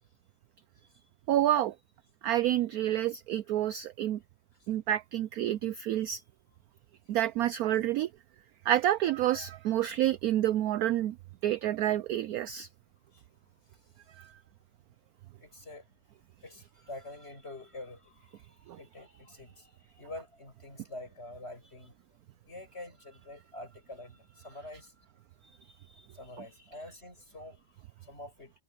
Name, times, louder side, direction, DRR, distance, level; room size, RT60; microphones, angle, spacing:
voice 1, 1.3-1.7 2.2-4.2 4.7-6.2 7.1-8.1 8.7-11.1 11.4-12.7 14.2-14.3 18.7-18.8, right 12 dB, 75° right, 0.8 m, -28 dB
voice 2, 15.4-15.8 16.4-21.9 22.4-25.1 26.1-27.6 28.0-28.5, left 2 dB, 30° left, 8.2 m, -47 dB
omnidirectional pair, 2.1 m